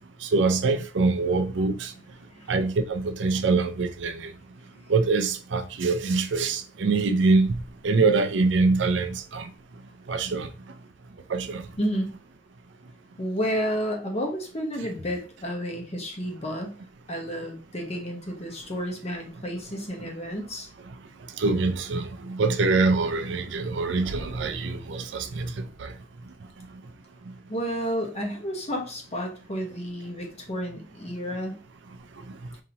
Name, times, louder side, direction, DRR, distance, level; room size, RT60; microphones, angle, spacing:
voice 1, 0.2-1.9 2.5-4.3 4.9-9.5 10.1-10.5 11.3-11.6 21.4-25.9, right 3 dB, 70° right, 0.5 m, -24 dB
voice 2, 11.8-12.2 13.2-16.8 17.1-20.7 27.5-31.6, equal, 35° left, 1.0 m, -31 dB
5.2 x 2.8 x 2.8 m
head